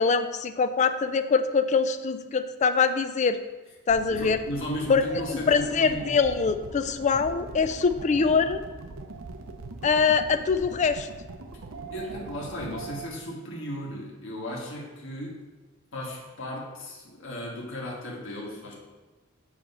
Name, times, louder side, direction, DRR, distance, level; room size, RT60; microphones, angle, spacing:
voice 1, 0.0-3.4 3.9-4.4 4.9-5.0 5.3-8.6 9.8-11.1, left 5 dB, 35° left, 10 dB, 0.3 m, -23 dB
sound 1, 3.9-13.1, right 3 dB, 85° right, 0.7 m, -41 dB
voice 2, 4.1-6.2 11.9-15.4 15.9-18.7, left 1 dB, 65° left, -3 dB, 1.4 m, -35 dB
7.6 x 3.0 x 5.3 m, 1.2 s
head